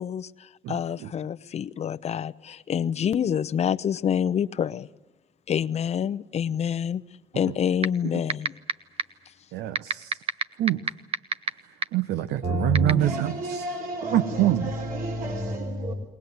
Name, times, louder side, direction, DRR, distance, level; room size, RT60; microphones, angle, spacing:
voice 1, 0.0-4.9 5.5-7.0 7.3-8.5 9.3-9.4, left 8 dB, 40° left, 11 dB, 0.8 m, -27 dB
voice 2, 0.6-1.1 9.5-10.2 10.6-10.8 11.6-13.7 14.1-14.7, right 13 dB, 80° right, 13 dB, 1.0 m, -26 dB
sound 1, 7.8-7.9 8.3-8.7 9.0-9.1 9.7-11.5 11.8-11.9 12.7-12.9, right 6 dB, 35° right, 1.0 m, -22 dB
voice 3, 12.4-15.9, right 1 dB, 55° right, 2 dB, 3.8 m, -29 dB
22.5 x 19.0 x 9.5 m, 1.1 s
cardioid pair, 110°, 17 cm